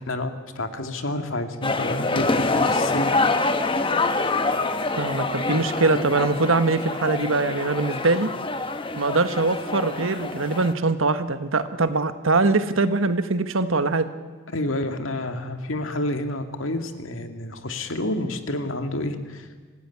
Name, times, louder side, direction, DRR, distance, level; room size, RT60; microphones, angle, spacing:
voice 1, 0.0-3.1 14.5-19.5, left 1 dB, 75° left, 6 dB, 2.2 m, -29 dB
sound 1, 1.6-10.7, left 3 dB, 25° left, 1.3 m, -26 dB
voice 2, 5.0-8.3 9.0-14.1, right 3 dB, 80° right, 10 dB, 1.3 m, -22 dB
25.5 x 16.5 x 9.9 m, 1.5 s
head